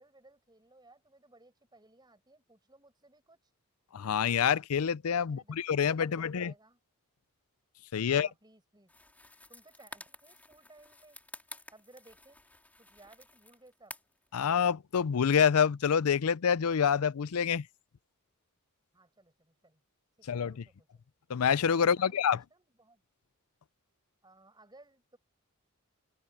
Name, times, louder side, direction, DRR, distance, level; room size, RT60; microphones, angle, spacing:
voice 1, 0.0-3.4 5.2-6.8 8.1-8.9 9.5-11.2 11.7-12.4 12.8-13.9 18.9-19.8 20.2-20.9 21.8-23.0 24.2-25.2, right 2 dB, 20° right, 7.4 m, -60 dB
voice 2, 3.9-6.5 7.9-8.3 14.3-17.6 20.3-20.5 21.3-22.4, left 7 dB, 75° left, 0.5 m, -27 dB
sound 1, 8.9-14.3, left 2 dB, 5° left, 3.7 m, -51 dB
open air
head